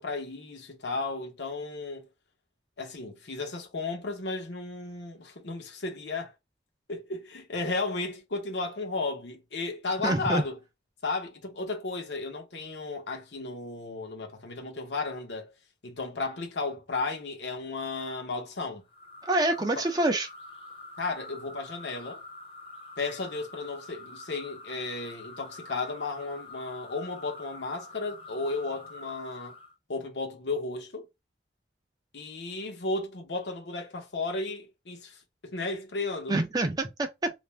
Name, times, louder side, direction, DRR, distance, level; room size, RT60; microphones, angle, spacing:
voice 1, 0.0-2.1 2.8-6.3 6.9-10.6 11.0-15.5 15.8-18.8 19.8-19.9 21.0-22.2 23.0-29.5 29.9-31.1 32.1-36.4, left 3 dB, 80° left, 0.9 m, -34 dB
voice 2, 10.0-10.4 19.2-20.3 36.3-37.3, right 2 dB, 20° right, 0.4 m, -26 dB
sound 1, 18.9-29.7, left 2 dB, 30° left, 0.7 m, -46 dB
2.5 x 2.1 x 3.1 m
head